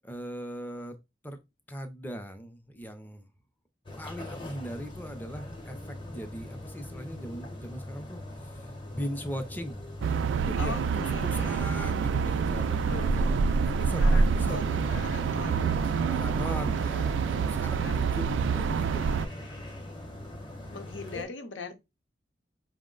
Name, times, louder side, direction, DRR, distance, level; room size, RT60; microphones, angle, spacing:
voice 1, 0.0-1.0 1.2-1.4 1.7-3.3 4.0-9.8 10.4-14.8 16.1-19.6, equal, 10° left, 0.5 m, -40 dB
sound 1, 3.9-21.3, left 1 dB, 25° left, 0.8 m, -41 dB
sound 2, 10.0-19.3, right 5 dB, 80° right, 0.3 m, -27 dB
voice 2, 10.6-11.6 12.7-13.1 13.9-15.7 17.8-18.2 20.7-21.8, left 4 dB, 85° left, 0.8 m, -41 dB
5.1 x 2.1 x 3.8 m
head